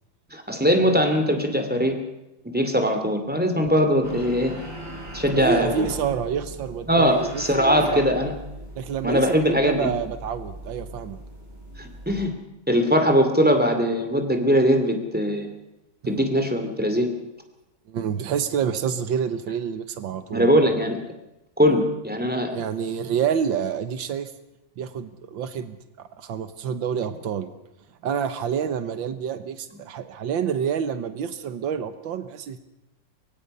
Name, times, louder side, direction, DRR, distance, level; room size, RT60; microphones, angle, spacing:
voice 1, 0.3-2.0 2.4-4.5 5.1-5.9 6.9-8.3 9.0-9.9 11.8-12.3 12.7-15.5 16.1-17.1 20.3-21.0 21.6-22.5, equal, 5° right, 5 dB, 2.5 m, -21 dB
sound 1, 4.0-12.3, right 1 dB, 20° right, 4.8 m, -38 dB
voice 2, 5.3-8.0 8.8-11.2 16.0-16.3 17.9-20.5 22.5-24.3 24.8-27.5 28.0-32.6, right 7 dB, 85° right, 10 dB, 1.8 m, -28 dB
23.5 x 23.5 x 5.5 m, 0.92 s
omnidirectional pair, 2.0 m